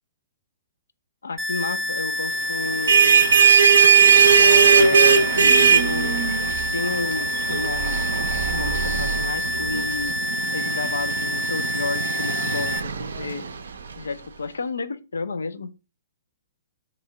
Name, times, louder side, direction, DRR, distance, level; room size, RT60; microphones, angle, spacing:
voice 1, 1.2-3.2 4.3-6.3 6.7-8.0 8.5-10.1 10.5-13.5 14.0-15.7, left 4 dB, 70° left, 0.4 m, -31 dB
sound 1, 1.4-12.8, left 2 dB, 15° right, 0.6 m, -28 dB
sound 2, 2.6-13.9, right 6 dB, 65° right, 0.4 m, -19 dB
3.4 x 3.1 x 3.7 m
figure-of-eight pair, 115°, 0 cm